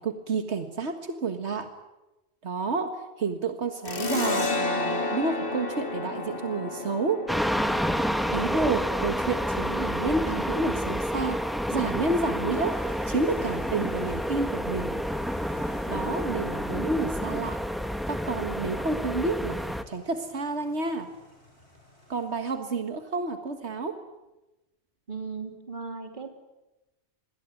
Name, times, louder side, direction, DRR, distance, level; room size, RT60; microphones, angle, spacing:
voice 1, 0.0-1.7 2.4-7.3 8.3-11.4 11.7-12.8 13.1-15.0 15.9-17.6 18.1-21.1 22.1-24.0, right 3 dB, 85° right, 7 dB, 2.0 m, -30 dB
sound 1, 3.8-11.0, left 3 dB, 55° left, 2.3 m, -32 dB
sound 2, 7.3-19.8, equal, ahead, 1.3 m, -29 dB
sound 3, 12.5-22.7, left 1 dB, 80° left, 7.4 m, -52 dB
voice 2, 25.1-26.3, right 5 dB, 50° right, 5 dB, 3.4 m, -37 dB
28.0 x 21.0 x 9.2 m, 1.0 s
omnidirectional pair, 1.1 m